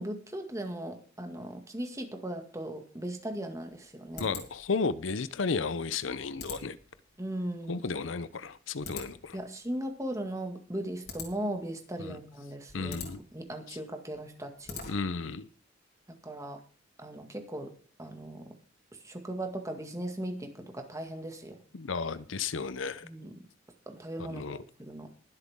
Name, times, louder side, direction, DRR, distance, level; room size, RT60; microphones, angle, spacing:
voice 1, 0.0-4.3 7.2-7.8 9.3-14.8 16.2-16.6 17.0-17.7 18.0-18.6 18.9-21.6 23.0-23.4 23.9-25.1, right 1 dB, 15° right, 4 dB, 2.1 m, -38 dB
sound 1, 3.6-15.3, left 5 dB, 55° left, 3.5 m, -47 dB
voice 2, 4.2-6.8 7.7-9.4 12.0-12.2 12.7-13.2 13.7-13.8 14.9-15.5 21.7-23.1 24.2-24.6, left 4 dB, 80° left, 16 dB, 0.7 m, -33 dB
21.5 x 8.1 x 3.7 m, 0.39 s
head